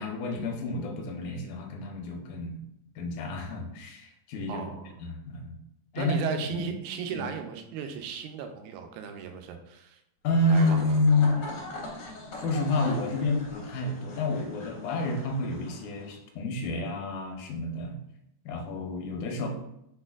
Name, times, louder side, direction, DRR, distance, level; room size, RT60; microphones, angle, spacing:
voice 1, 0.0-2.6 3.0-4.7 5.0-5.5 5.9-6.2 6.5-6.7 7.1-7.3 10.2-11.4 12.4-18.0 18.5-19.5, left 2 dB, 85° left, 3 dB, 2.1 m, -29 dB
voice 2, 4.5-4.9 6.0-10.0 10.5-11.0, right 7 dB, 85° right, 6 dB, 2.0 m, -36 dB
sound 1, 10.4-16.1, left 2 dB, 60° left, 1.6 m, -41 dB
4.5 x 4.3 x 2.4 m, 0.80 s
omnidirectional pair, 3.5 m